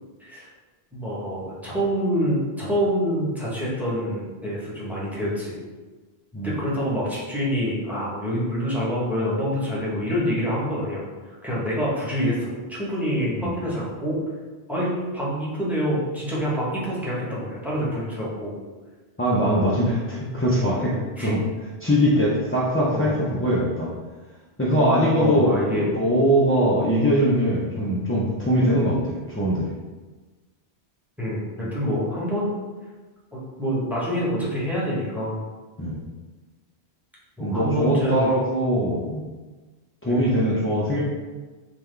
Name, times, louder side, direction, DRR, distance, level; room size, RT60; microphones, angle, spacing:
voice 1, 0.9-5.6 6.4-11.1 11.4-14.2 14.7-18.5 21.2-21.3 22.9-23.1 25.2-25.9 31.2-32.5 33.3-35.3 37.4-38.3 40.1-40.3, equal, ahead, -7 dB, 0.9 m, -26 dB
voice 2, 19.2-21.4 21.8-23.9 24.6-29.7 31.6-31.7 35.8-36.0 37.4-39.2 40.0-41.0, equal, 20° left, -7 dB, 0.3 m, -22 dB
3.7 x 2.9 x 3.2 m, 1.3 s
omnidirectional pair, 1.1 m